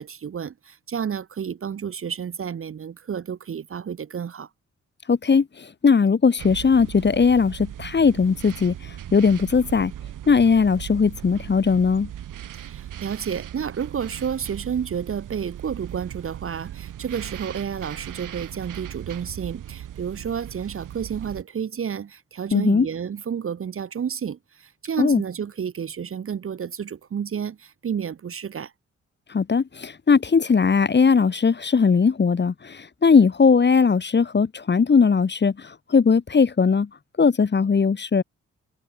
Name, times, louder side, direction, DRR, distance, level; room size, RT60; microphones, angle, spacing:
voice 1, 0.0-4.5 12.5-28.7, right 7 dB, 45° right, 0.7 m, -31 dB
voice 2, 5.1-9.9 10.3-12.1 22.5-22.9 25.0-25.2 29.3-36.9 37.2-38.2, left 5 dB, 35° left, 0.9 m, -19 dB
sound 1, 6.4-21.4, right 11 dB, 75° right, 1.3 m, -38 dB
supercardioid pair, 40°, 31 cm